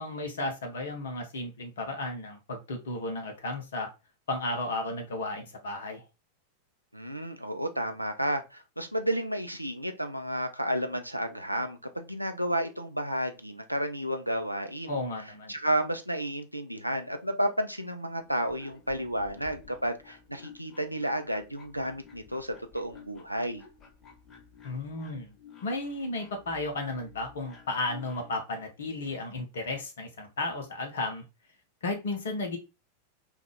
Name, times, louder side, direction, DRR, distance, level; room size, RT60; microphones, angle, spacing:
voice 1, 0.0-3.9 4.3-6.0 14.9-15.5 24.6-25.3 25.6-31.2 31.8-32.6, left 2 dB, 60° left, 0.8 m, -34 dB
voice 2, 6.9-15.0 15.5-23.6, equal, 90° right, 0.5 m, -32 dB
sound 1, 18.3-28.4, left 6 dB, 25° left, 0.8 m, -53 dB
3.5 x 2.4 x 3.2 m
figure-of-eight pair, 90°, 0 cm